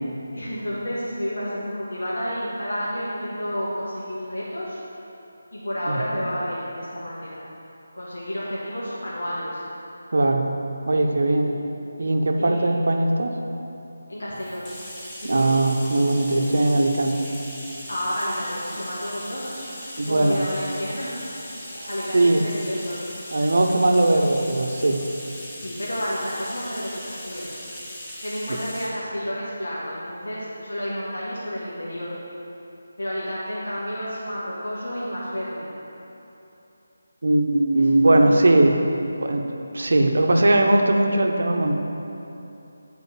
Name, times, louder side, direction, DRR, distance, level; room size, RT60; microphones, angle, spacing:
voice 1, 0.3-4.8 5.5-7.4 7.9-9.6 11.4-11.6 12.4-12.7 14.1-14.7 15.2-15.6 17.9-21.3 21.7-23.0 25.6-27.5 28.2-32.1 33.0-35.7 37.7-38.5, equal, 85° left, -8 dB, 1.6 m, -30 dB
voice 2, 5.9-6.2 10.1-10.5 10.9-11.5 12.0-13.3 15.2-17.3 20.0-20.4 21.7-22.4 23.3-25.0 37.2-38.8 39.2-41.8, right 2 dB, 70° right, 3 dB, 0.7 m, -20 dB
Bathtub (filling or washing), 14.3-29.0, equal, 10° left, 0.9 m, -39 dB
9.2 x 4.4 x 4.1 m, 2.9 s
figure-of-eight pair, 165°, 0 cm